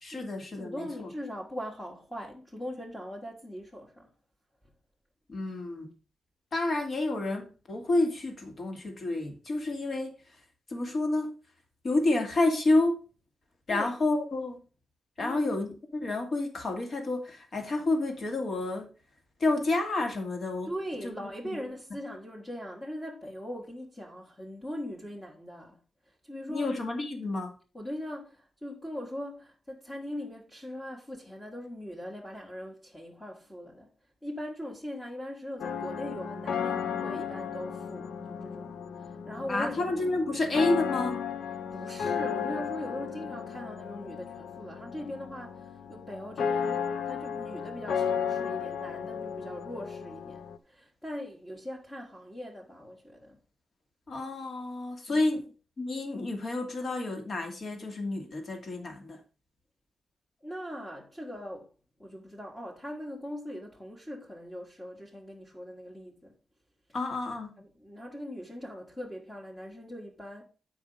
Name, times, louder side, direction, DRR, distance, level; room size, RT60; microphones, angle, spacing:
voice 1, 0.0-1.1 5.3-5.9 6.5-10.2 10.7-11.3 11.8-13.0 13.7-14.6 15.2-15.7 16.0-18.9 19.4-20.7 21.0-21.6 26.5-27.5 39.5-41.2 54.1-55.4 55.8-59.2 66.9-67.5, left 2 dB, 45° left, 1.9 m, -29 dB
voice 2, 0.6-4.1 13.7-13.9 15.2-15.6 20.7-25.8 26.1-26.7 27.7-33.9 34.2-39.9 41.7-53.4 55.1-55.2 60.4-61.7 62.0-66.3 67.6-70.5, equal, 10° left, 1.5 m, -40 dB
sound 1, 35.6-50.6, left 7 dB, 85° left, 0.6 m, -34 dB
9.2 x 4.9 x 5.4 m
wide cardioid pair, 155°, 0 cm